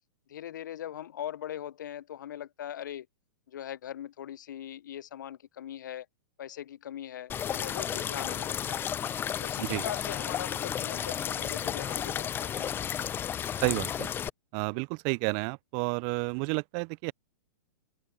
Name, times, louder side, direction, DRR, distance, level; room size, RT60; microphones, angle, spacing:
voice 1, 0.3-3.1 3.5-6.1 6.4-8.9 9.4-12.7 13.0-13.1 14.6-14.8, left 11 dB, 70° left, 0.7 m, -40 dB
sound 1, 7.3-14.3, left 9 dB, 20° left, 0.6 m, -33 dB
voice 2, 13.6-14.1 14.5-17.1, right 36 dB, 40° right, 0.4 m, -31 dB
open air
hypercardioid pair, 110°, 11 cm